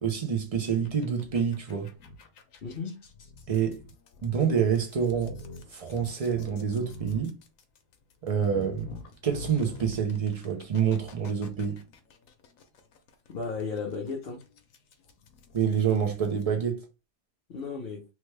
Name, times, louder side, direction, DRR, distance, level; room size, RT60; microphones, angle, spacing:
voice 1, 0.0-1.9 3.5-3.8 4.2-5.4 5.7-7.3 8.2-11.8 15.5-16.8, right 7 dB, 40° right, 0.5 m, -27 dB
sound 1, 0.7-16.4, left 4 dB, 80° left, 1.0 m, -47 dB
voice 2, 2.6-3.0 13.3-14.4 17.5-18.0, left 4 dB, 55° left, 0.8 m, -34 dB
3.2 x 2.2 x 3.2 m
omnidirectional pair, 1.4 m